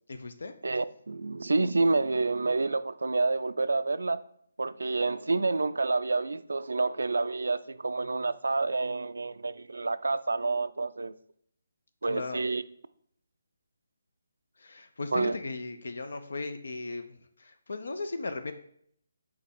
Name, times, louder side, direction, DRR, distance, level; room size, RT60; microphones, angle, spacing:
voice 1, 0.1-0.5 12.0-12.5 14.6-18.5, left 3 dB, 75° left, 0.6 m, -37 dB
voice 2, 0.6-4.2 4.6-11.1 12.0-12.6 15.1-15.4, right 3 dB, 90° right, 0.4 m, -28 dB
6.5 x 4.3 x 3.6 m
hypercardioid pair, 160°, 0 cm